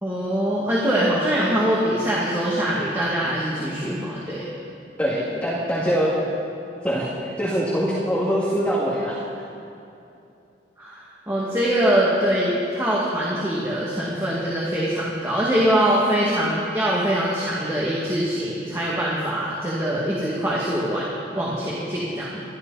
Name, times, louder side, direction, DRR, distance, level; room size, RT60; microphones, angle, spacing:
voice 1, 0.0-4.5 10.8-22.4, right 1 dB, 15° right, -7 dB, 2.0 m, -23 dB
voice 2, 5.0-6.1 6.8-9.2, equal, 5° left, -8 dB, 2.1 m, -23 dB
28.0 x 12.5 x 4.1 m, 2.7 s
head